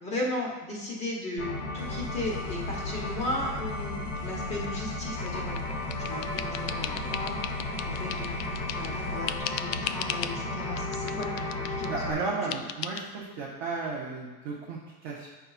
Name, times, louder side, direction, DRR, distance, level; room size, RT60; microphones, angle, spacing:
voice 1, 0.0-5.6 6.0-7.4 7.9-8.3 8.7-12.5, left 1 dB, 15° left, -2 dB, 0.8 m, -36 dB
sound 1, 1.4-12.1, left 2 dB, 40° left, 0.9 m, -34 dB
sound 2, 1.8-9.4, equal, 55° right, 1.0 m, -42 dB
sound 3, 5.3-9.0 9.3-10.4 10.8-11.9 12.5-13.0, left 10 dB, 85° left, 0.5 m, -37 dB
voice 2, 11.9-15.3, right 3 dB, 25° right, -5 dB, 0.3 m, -34 dB
8.8 x 5.5 x 2.3 m, 1.2 s
supercardioid pair, 170°, 47 cm